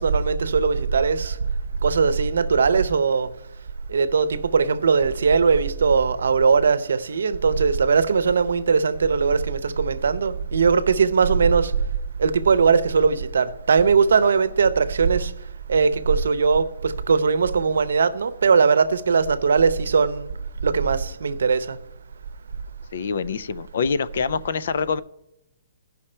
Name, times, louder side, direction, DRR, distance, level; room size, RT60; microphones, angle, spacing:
voice 1, 0.0-1.4 1.8-3.3 3.9-11.7 12.2-15.3 15.7-20.3 20.6-21.8, right 5 dB, 75° right, 0.7 m, -20 dB
voice 2, 22.9-25.0, left 5 dB, 50° left, 0.4 m, -25 dB
16.5 x 5.7 x 4.4 m
hypercardioid pair, 180°, 0 cm